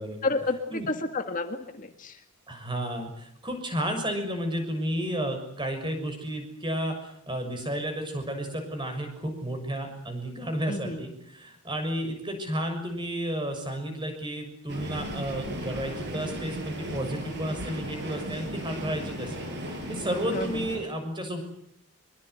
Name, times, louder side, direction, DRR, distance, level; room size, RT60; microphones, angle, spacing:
voice 1, 0.2-2.2 10.7-11.0 20.3-20.6, left 3 dB, 35° left, 6 dB, 1.8 m, -30 dB
voice 2, 2.5-21.4, right 1 dB, 20° right, 6 dB, 6.6 m, -32 dB
sound 1, 14.7-20.8, right 1 dB, 50° right, 8.0 m, -36 dB
24.5 x 24.0 x 8.2 m, 0.72 s
head